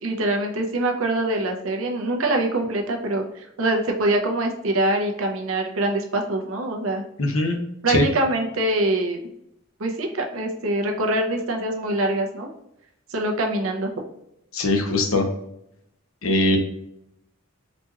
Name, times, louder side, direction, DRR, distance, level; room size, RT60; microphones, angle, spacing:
voice 1, 0.0-7.0 7.8-9.2 9.8-12.5 13.1-13.9, right 1 dB, 80° right, 3 dB, 0.7 m, -24 dB
voice 2, 7.2-7.6 7.9-8.1 14.5-15.3 16.2-16.6, left 2 dB, 80° left, 4 dB, 0.8 m, -21 dB
4.2 x 2.9 x 2.3 m, 0.80 s
head